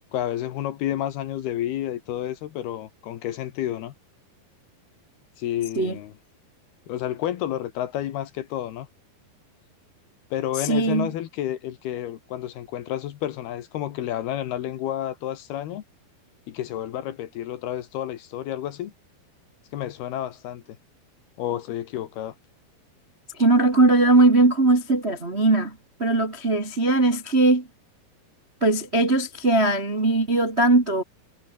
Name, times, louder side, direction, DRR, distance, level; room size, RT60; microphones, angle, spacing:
voice 1, 0.1-3.9 5.4-6.1 6.9-8.9 10.3-15.8 16.5-18.9 19.7-20.6 21.4-22.3, left 12 dB, 70° left, 3.0 m, -30 dB
voice 2, 10.6-11.1 23.3-27.7 28.6-31.0, right 2 dB, 25° right, 1.3 m, -20 dB
omnidirectional pair, 5.2 m